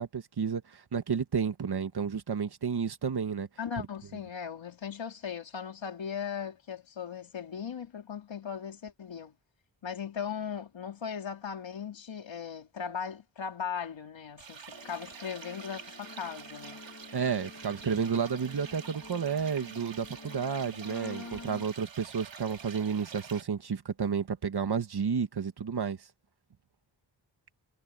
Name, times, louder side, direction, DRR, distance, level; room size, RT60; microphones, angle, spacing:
voice 1, 0.0-3.5 3.8-3.9 17.1-26.0, right 6 dB, 60° right, 1.9 m, -31 dB
voice 2, 3.6-9.3 9.8-16.9, left 7 dB, 85° left, 3.6 m, -38 dB
sound 1, 14.4-23.4, right 6 dB, 80° right, 3.9 m, -47 dB
sound 2, 14.7-21.6, left 3 dB, 40° left, 2.6 m, -48 dB
wide cardioid pair, 115°, 44 cm